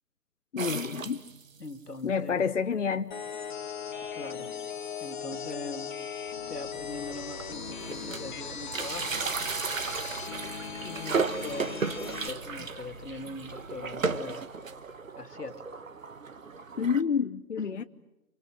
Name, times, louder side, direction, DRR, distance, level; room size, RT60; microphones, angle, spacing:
voice 1, 0.5-1.2 2.0-3.2 16.8-17.8, left 6 dB, 50° left, 0.9 m, -28 dB
Sink Bowl Fill Empty, 0.6-1.7 2.3-2.4 2.6-2.7 3.5-3.7 4.0-4.2 4.6-4.7 5.9-6.0 6.7-6.8 7.1-8.4 8.6-17.0, right 5 dB, 60° right, 1.7 m, -35 dB
voice 2, 1.6-2.5 4.1-4.5 5.0-6.0 6.5-9.3 10.8-11.8 12.3-14.4 15.2-15.6 17.6-17.8, left 3 dB, 85° left, 2.5 m, -41 dB
sound 1, 3.1-12.3, left 7 dB, 30° left, 2.0 m, -38 dB
Train, 6.1-15.3, right 1 dB, 25° right, 6.6 m, -48 dB
28.0 x 26.0 x 7.6 m
figure-of-eight pair, 155°, 46 cm